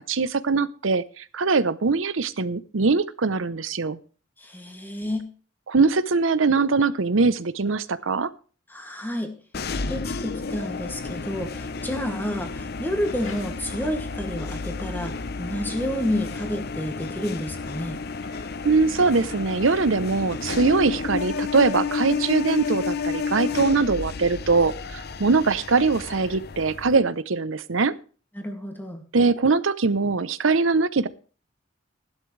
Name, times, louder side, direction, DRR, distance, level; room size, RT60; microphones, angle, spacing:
voice 1, 0.0-4.0 5.7-8.3 18.6-27.9 29.1-31.1, right 4 dB, 80° right, 15 dB, 0.8 m, -22 dB
voice 2, 4.4-5.3 8.7-9.4 9.9-18.0 28.3-29.0, left 1 dB, 10° left, 3 dB, 2.3 m, -30 dB
sound 1, 9.5-27.0, left 4 dB, 50° left, 0.7 m, -31 dB
sound 2, 13.1-13.6 14.6-15.5 15.9-16.5 17.6-18.3, left 2 dB, 80° left, 2.6 m, -47 dB
15.5 x 11.5 x 3.3 m, 0.38 s
head